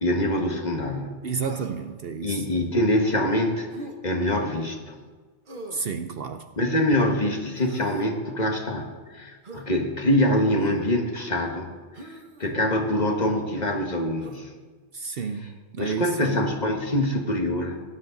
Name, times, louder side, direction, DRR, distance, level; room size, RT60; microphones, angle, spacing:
voice 1, 0.0-1.2 2.2-3.7 4.0-5.0 6.6-11.7 12.0-14.5 15.2-15.5 15.8-17.8, left 1 dB, 35° left, 3 dB, 1.5 m, -25 dB
voice 2, 1.2-2.4 5.7-6.4 14.9-16.4, right 6 dB, 60° right, 8 dB, 0.8 m, -31 dB
Human voice, 1.4-1.9 3.7-4.0 5.5-5.9 7.5-8.1 9.4-9.7 10.6-10.9 11.9-12.6 14.2-14.4, right 1 dB, 45° right, 1.3 m, -41 dB
17.5 x 10.5 x 3.9 m, 1.4 s
omnidirectional pair, 1.2 m